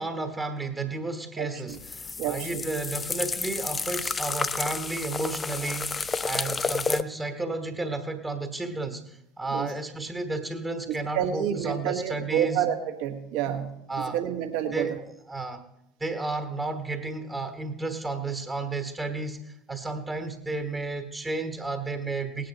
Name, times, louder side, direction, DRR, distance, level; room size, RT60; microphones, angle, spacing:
voice 1, 0.0-12.7 13.9-14.2 14.7-14.9 15.3-15.6 16.0-22.5, right 3 dB, 15° right, 6 dB, 1.3 m, -32 dB
voice 2, 1.4-1.8 2.2-2.6 9.5-9.7 10.9-13.8 14.1-15.0, right 10 dB, 55° right, 5 dB, 1.6 m, -29 dB
sound 1, 1.7-7.0, left 4 dB, 20° left, 0.5 m, -31 dB
19.0 x 9.3 x 4.0 m, 0.80 s
figure-of-eight pair, 70°, 0 cm